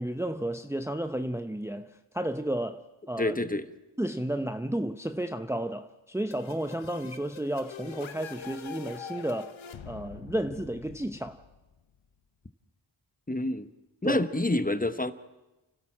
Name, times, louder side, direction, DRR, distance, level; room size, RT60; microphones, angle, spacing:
voice 1, 0.0-3.4 4.0-9.6 9.9-11.4 14.0-14.2, right 1 dB, 5° right, 0.9 m, -32 dB
voice 2, 3.2-3.6 13.3-13.7 14.0-15.1, left 1 dB, 15° left, 1.2 m, -27 dB
sound 1, 6.3-12.0, left 7 dB, 75° left, 1.1 m, -44 dB
29.5 x 12.5 x 7.4 m
cardioid pair, 45°, 48 cm